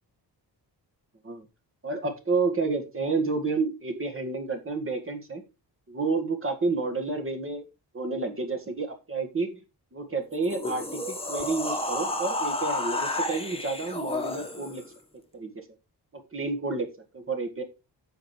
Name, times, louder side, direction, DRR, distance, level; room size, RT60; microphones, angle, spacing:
voice 1, 1.8-5.4 5.9-7.7 7.9-9.6 9.9-14.8 15.3-15.5 16.3-16.9 17.1-17.6, right 3 dB, 30° right, 5 dB, 2.0 m, -30 dB
sound 1, 10.3-14.9, left 2 dB, 15° left, 1.5 m, -31 dB
9.3 x 6.8 x 4.5 m, 0.27 s
wide cardioid pair, 160°, 42 cm